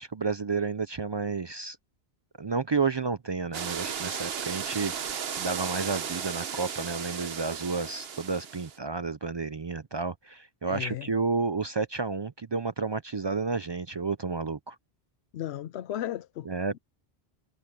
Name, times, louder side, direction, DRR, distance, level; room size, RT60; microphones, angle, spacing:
voice 1, 0.0-1.8 2.4-14.8 16.5-16.8, right 4 dB, 45° right, 0.3 m, -31 dB
sound 1, 3.5-8.8, right 7 dB, 70° right, 1.2 m, -35 dB
voice 2, 10.6-11.1 15.3-16.5, left 12 dB, 90° left, 0.9 m, -35 dB
omnidirectional pair, 1.1 m